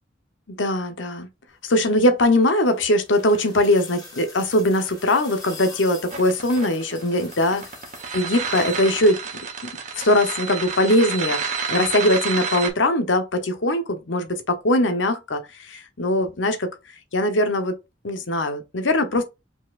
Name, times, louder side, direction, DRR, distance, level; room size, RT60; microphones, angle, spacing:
voice 1, 0.5-1.3 1.6-7.6 8.1-9.2 9.6-16.7 17.1-17.7 18.0-19.2, left 1 dB, 90° left, 1.0 m, -21 dB
sound 1, 2.1-8.9 10.2-10.3, left 3 dB, 20° left, 1.9 m, -44 dB
sound 2, 6.1-12.7, right 5 dB, 40° right, 1.3 m, -29 dB
5.1 x 4.1 x 2.5 m
head